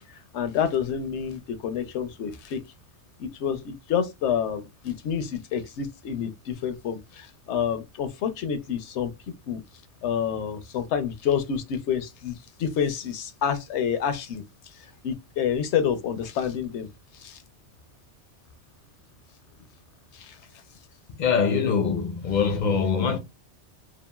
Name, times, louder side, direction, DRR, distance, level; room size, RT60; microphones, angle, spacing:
voice 1, 0.0-2.6 3.2-9.1 9.5-9.6 10.0-16.9 17.1-17.4 20.1-20.4, left 8 dB, 75° left, 0.9 m, -28 dB
voice 2, 21.2-23.2, left 6 dB, 50° left, 0.6 m, -23 dB
2.9 x 2.3 x 2.2 m
omnidirectional pair, 1.2 m